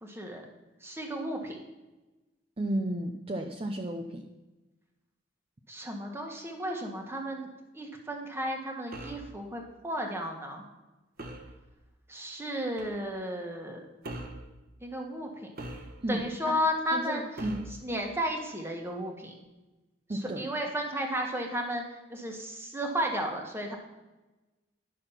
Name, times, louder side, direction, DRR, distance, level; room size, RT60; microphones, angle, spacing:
voice 1, 0.0-0.4 0.8-1.6 5.7-7.5 7.7-10.6 12.1-13.8 14.8-15.5 16.1-17.3 17.8-19.3 20.1-21.8 22.1-23.8, equal, 15° right, 1 dB, 1.5 m, -33 dB
voice 2, 2.6-4.2 16.0-16.6 16.9-17.6 20.1-20.4, right 1 dB, 30° right, 2 dB, 0.7 m, -33 dB
sound 1, 8.9-9.3 11.2-11.5 12.8-13.0 14.0-14.5 15.6-16.2 17.4-17.8, right 1 dB, 50° right, 1.3 m, -41 dB
11.0 x 6.3 x 5.7 m, 1.1 s
head